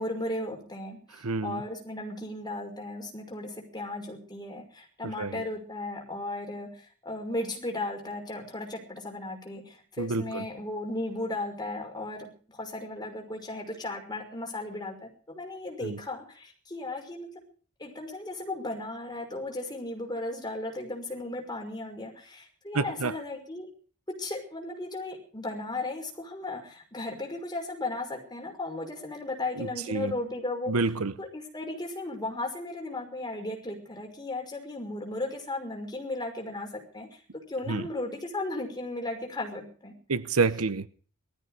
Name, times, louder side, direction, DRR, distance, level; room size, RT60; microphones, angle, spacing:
voice 1, 0.0-17.3 17.8-23.7 24.1-30.8 31.2-37.2 37.5-40.0, left 2 dB, 20° left, 5.8 m, -36 dB
voice 2, 1.2-1.6 5.2-5.4 10.0-10.4 15.8-16.0 22.7-23.1 29.6-30.1 30.7-31.1 37.7-37.8 40.1-40.9, right 4 dB, 85° right, 1.0 m, -28 dB
19.5 x 14.0 x 4.9 m
head